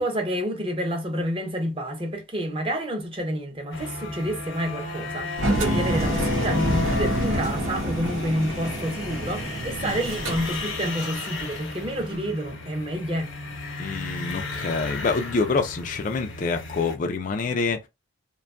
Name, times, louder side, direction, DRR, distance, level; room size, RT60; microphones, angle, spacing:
voice 1, 0.0-13.3, equal, 25° right, 0.6 m, -29 dB
sound 1, 3.7-17.0, left 3 dB, 75° left, 0.8 m, -34 dB
Engine, 5.4-11.2, right 1 dB, 80° right, 0.8 m, -27 dB
voice 2, 13.8-17.8, left 4 dB, 40° left, 0.3 m, -26 dB
2.6 x 2.3 x 2.4 m
head